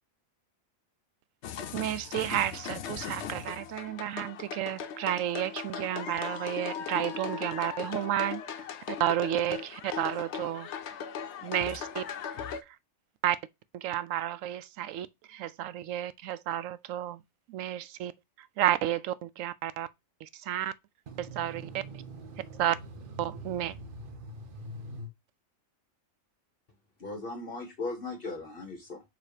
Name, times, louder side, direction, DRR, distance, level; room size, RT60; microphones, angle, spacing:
sound 1, 1.4-12.6, left 7 dB, 65° left, 0.9 m, -38 dB
voice 1, 1.7-10.7 11.4-12.0 13.2-13.4 13.7-17.2 17.5-18.1 18.4-19.9 20.2-20.7 21.2-21.8 22.5-22.8 23.2-23.8, right 12 dB, 75° right, 0.9 m, -31 dB
voice 2, 21.1-22.6 23.3-23.4 23.7-25.1, right 1 dB, 45° right, 1.0 m, -43 dB
voice 3, 27.0-29.0, left 3 dB, 45° left, 1.4 m, -37 dB
6.7 x 3.0 x 4.9 m
omnidirectional pair, 1.4 m